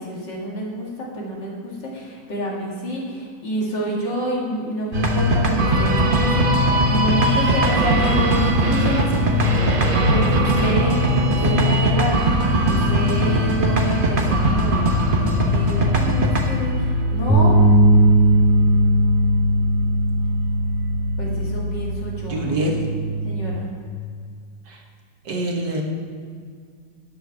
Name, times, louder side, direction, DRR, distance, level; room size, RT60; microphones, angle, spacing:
voice 1, 0.0-9.3 10.1-12.2 12.7-17.6 21.2-22.4 23.2-23.7, right 1 dB, 65° left, -3 dB, 2.9 m, -28 dB
sound 1, 4.9-22.0, equal, 40° right, 0.8 m, -20 dB
sound 2, 17.3-23.5, right 1 dB, 5° right, 1.2 m, -18 dB
voice 2, 22.3-22.8 24.7-24.8 25.3-25.8, right 1 dB, 65° right, 1 dB, 1.9 m, -25 dB
10.0 x 7.8 x 6.7 m, 2.1 s
omnidirectional pair, 2.1 m